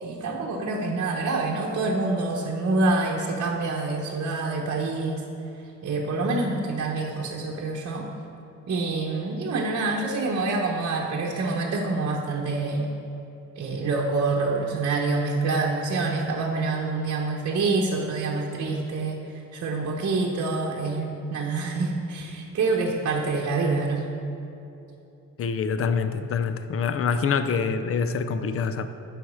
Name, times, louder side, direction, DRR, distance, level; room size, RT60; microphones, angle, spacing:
voice 1, 0.0-5.2 5.8-8.1 8.7-12.9 13.6-24.1, right 3 dB, 50° right, -2 dB, 0.9 m, -26 dB
voice 2, 25.4-28.9, left 5 dB, 45° left, 10 dB, 0.5 m, -25 dB
9.4 x 5.0 x 6.2 m, 3.0 s
cardioid pair, 130°, 32 cm